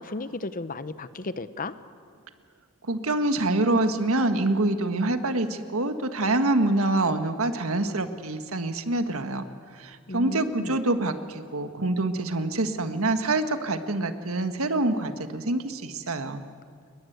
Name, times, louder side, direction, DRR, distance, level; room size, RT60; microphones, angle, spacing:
voice 1, 0.0-1.7 10.1-10.8, left 2 dB, 40° left, 13 dB, 0.9 m, -34 dB
voice 2, 2.9-9.4 9.8-16.4, right 2 dB, 75° right, 8 dB, 1.6 m, -26 dB
29.5 x 20.5 x 8.1 m, 2.1 s
head